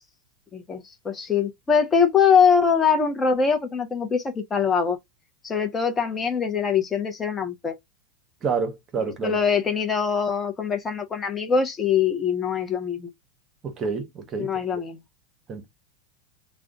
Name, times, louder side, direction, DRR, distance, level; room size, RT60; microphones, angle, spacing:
voice 1, 0.5-5.0 5.4-7.7 9.2-13.1 14.4-15.0, left 6 dB, 20° left, 0.6 m, -23 dB
voice 2, 8.4-9.4 13.6-14.8 15.5-15.6, right 5 dB, 35° right, 0.8 m, -29 dB
2.4 x 2.1 x 3.7 m
supercardioid pair, 115°, 0 cm